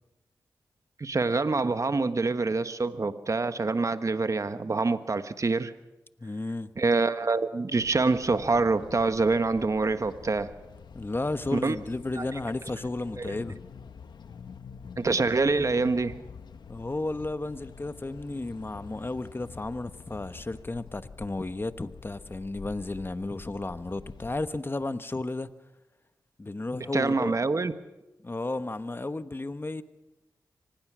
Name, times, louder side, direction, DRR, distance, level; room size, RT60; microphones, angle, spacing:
voice 1, 1.0-5.7 6.8-10.5 11.5-11.8 12.2-12.3 13.2-13.3 15.0-16.2 26.9-27.7, right 3 dB, 45° right, 1.3 m, -26 dB
voice 2, 6.2-6.7 10.9-13.6 16.7-25.5 26.4-27.4 28.2-29.8, left 2 dB, 30° left, 1.2 m, -33 dB
sound 1, 7.7-24.5, left 6 dB, 80° left, 1.1 m, -47 dB
25.0 x 19.5 x 6.2 m
cardioid pair, 45°, 7 cm